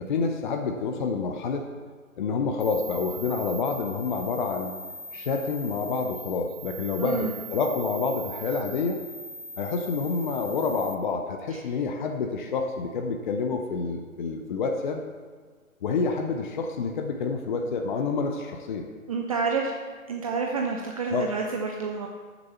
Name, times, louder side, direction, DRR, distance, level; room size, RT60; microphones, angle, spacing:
voice 1, 0.0-1.6 2.2-4.8 5.1-9.0 9.6-15.0 15.8-18.8 21.1-21.3, left 4 dB, 35° left, 4 dB, 0.7 m, -28 dB
sound 1, 2.6-10.9, right 3 dB, 75° left, 2.0 m, -41 dB
voice 2, 7.0-7.3 11.5-11.6 19.1-19.7 20.1-22.1, right 4 dB, 25° right, 1 dB, 0.6 m, -28 dB
13.5 x 7.1 x 4.4 m, 1.5 s
figure-of-eight pair, 130°, 42 cm